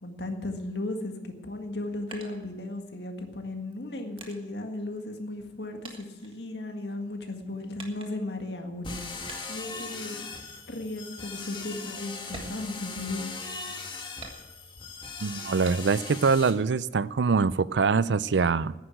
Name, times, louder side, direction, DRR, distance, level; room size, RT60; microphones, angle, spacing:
voice 1, 0.0-9.0 9.5-10.3 10.7-13.3, left 2 dB, 75° left, 5 dB, 1.8 m, -36 dB
sound 1, 1.6-3.1 3.7-5.6 5.8-7.0 7.8-8.4 9.3-9.8 10.2-10.5 10.9-11.0 11.4-11.6 12.2-13.4 14.2-14.9 15.6-16.2 16.6-17.4, right 3 dB, 30° right, 1.6 m, -47 dB
sound 2, 8.8-16.5, left 4 dB, 25° left, 1.5 m, -39 dB
voice 2, 15.2-18.7, right 5 dB, 90° right, 18 dB, 0.5 m, -24 dB
10.5 x 9.4 x 9.0 m, 1.1 s
head